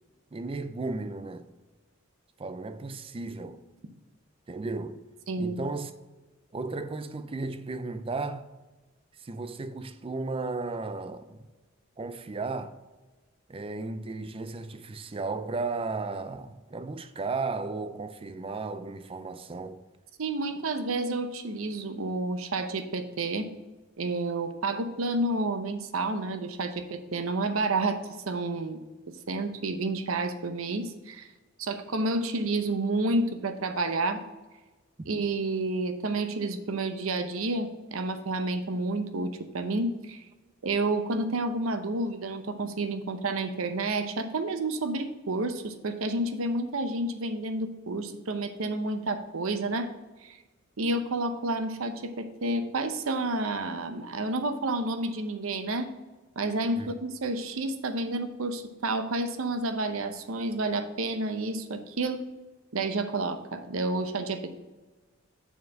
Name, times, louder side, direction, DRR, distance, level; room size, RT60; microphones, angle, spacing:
voice 1, 0.3-1.5 2.4-3.6 4.5-5.0 5.4-5.9 6.5-8.5 9.2-11.5 12.0-12.7 13.5-19.8 56.8-56.9, right 3 dB, 25° right, 0.4 m, -34 dB
voice 2, 5.3-5.6 20.2-23.5 24.0-28.8 29.3-31.3 31.6-34.2 35.1-40.2 40.6-49.9 50.2-50.4 50.8-55.9 56.4-62.2 62.7-64.5, right 2 dB, 85° right, 0.7 m, -30 dB
6.9 x 4.3 x 6.3 m
head